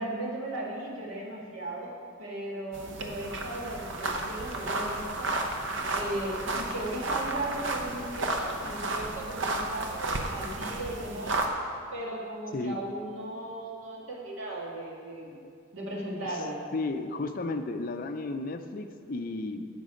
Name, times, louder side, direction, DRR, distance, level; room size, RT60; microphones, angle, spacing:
voice 1, 0.0-1.9 2.2-5.3 5.6-11.4 11.9-15.4 15.7-16.6, right 1 dB, 80° right, -3 dB, 1.8 m, -36 dB
sound 1, 2.7-11.5, right 2 dB, 60° right, 0.8 m, -33 dB
voice 2, 16.7-19.7, left 2 dB, 45° left, 8 dB, 0.5 m, -33 dB
9.2 x 6.5 x 5.1 m, 2.3 s
head